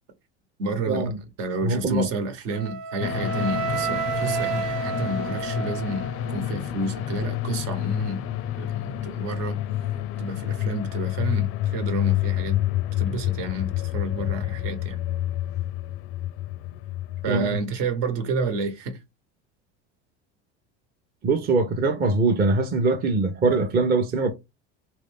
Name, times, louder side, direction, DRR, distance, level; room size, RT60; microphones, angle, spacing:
voice 1, 0.6-1.1 1.4-8.2 8.6-9.6 10.2-12.6 13.0-15.0 17.2-19.0, right 2 dB, 65° right, 1.3 m, -30 dB
voice 2, 1.6-2.1 17.3-17.5 21.2-24.3, right 3 dB, 30° right, 0.7 m, -22 dB
Wind instrument woodwind instrument, 2.5-6.6, right 5 dB, 85° right, 1.0 m, -30 dB
sound 1, 3.0-17.4, left 12 dB, 40° left, 0.4 m, -28 dB
3.3 x 2.6 x 3.5 m
supercardioid pair, 115°, 33 cm